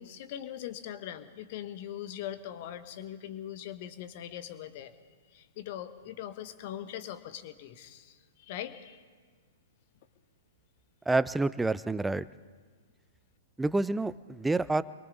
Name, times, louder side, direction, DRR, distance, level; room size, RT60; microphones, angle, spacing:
voice 1, 0.0-4.9 5.3-9.0, left 11 dB, 45° left, 11 dB, 1.4 m, -41 dB
voice 2, 11.1-12.2 13.6-14.8, right 2 dB, 5° right, 16 dB, 0.5 m, -28 dB
29.0 x 23.0 x 3.9 m, 1.5 s
figure-of-eight pair, 110°, 0 cm